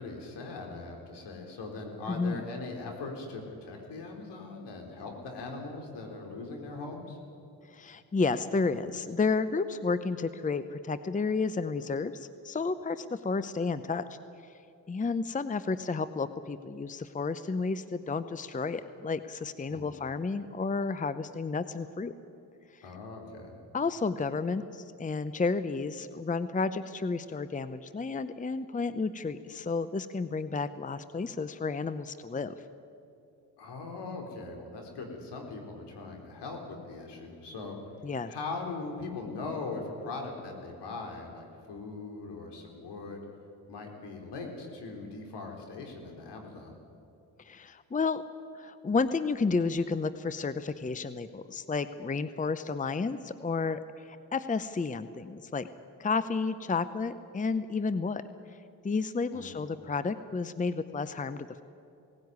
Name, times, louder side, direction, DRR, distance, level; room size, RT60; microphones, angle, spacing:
voice 1, 0.0-7.2 19.7-20.1 22.8-23.6 33.6-37.8 38.3-43.2 43.7-46.7 59.3-59.7, left 3 dB, 75° left, 2 dB, 4.2 m, -40 dB
voice 2, 2.1-2.4 7.7-14.2 14.4-14.6 14.9-22.1 22.7-22.8 23.7-32.5 38.0-38.3 47.4-48.2 48.5-55.7 56.0-58.2 58.5-58.6 58.8-61.6, left 4 dB, 20° left, 13 dB, 0.8 m, -31 dB
18.0 x 16.5 x 9.6 m, 2.6 s
supercardioid pair, 65°, 42 cm